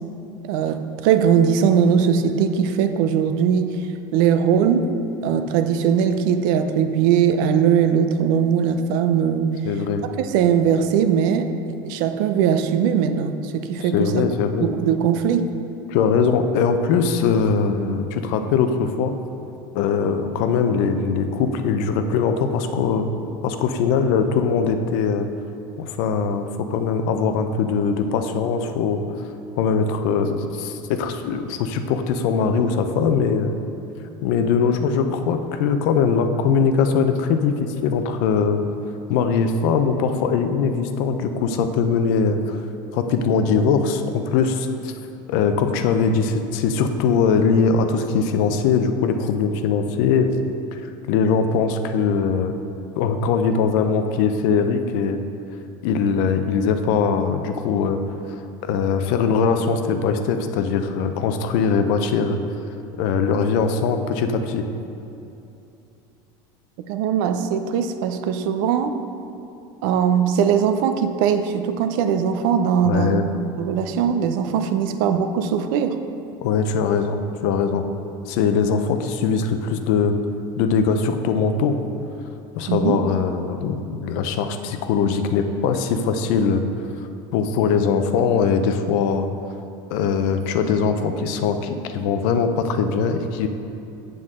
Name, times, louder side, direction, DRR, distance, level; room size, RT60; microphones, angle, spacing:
voice 1, 0.4-3.8 4.1-5.0 5.2-9.6 10.2-11.6 11.8-14.3 14.6-15.5 66.9-69.0 69.8-73.2 73.6-76.0 82.7-83.0, right 7 dB, 65° right, 8 dB, 0.6 m, -20 dB
voice 2, 9.6-10.0 13.8-14.7 15.9-19.1 19.7-23.1 23.4-25.3 25.8-29.0 29.6-33.5 34.2-38.6 39.1-42.6 42.9-44.9 45.3-50.3 50.7-52.5 53.0-55.2 55.8-58.0 58.3-58.4 58.6-62.4 63.0-64.6 72.8-73.3 76.4-77.8 78.3-80.2 80.6-81.8 82.6-86.6 87.3-89.3 89.9-93.5, left 5 dB, 65° left, 8 dB, 0.6 m, -21 dB
7.8 x 7.7 x 3.7 m, 2.8 s
supercardioid pair, 150°, 11 cm